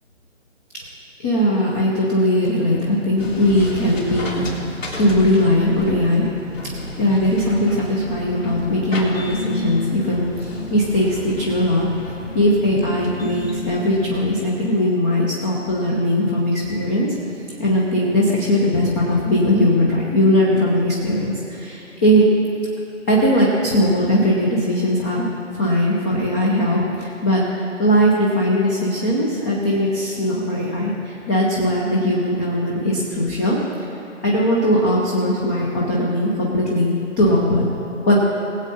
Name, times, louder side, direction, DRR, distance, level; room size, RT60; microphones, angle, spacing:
voice 1, 1.2-4.5 5.0-6.3 7.0-10.3 10.7-11.9 12.3-17.1 17.6-22.3 23.1-25.3 25.5-33.6 34.2-37.7 38.1-38.2, equal, 10° left, -4 dB, 0.7 m, -19 dB
sound 1, 3.2-14.2, left 2 dB, 90° left, 3.4 m, -31 dB
20.5 x 8.0 x 4.2 m, 3.0 s
figure-of-eight pair, 150°, 38 cm